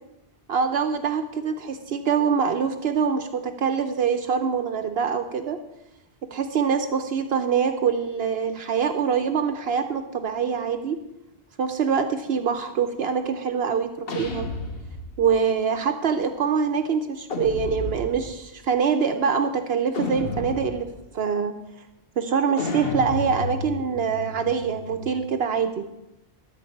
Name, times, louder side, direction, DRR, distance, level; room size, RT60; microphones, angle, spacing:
voice 1, 0.5-5.6 6.3-11.0 11.6-14.5 15.2-20.9 21.1-21.5 22.2-25.9, right 6 dB, 70° right, 7 dB, 0.9 m, -24 dB
sound 1, 14.1-15.4 17.3-18.4 19.9-21.0 22.6-25.3, left 3 dB, 60° left, 1.3 m, -32 dB
13.0 x 4.5 x 8.4 m, 0.91 s
omnidirectional pair, 1.1 m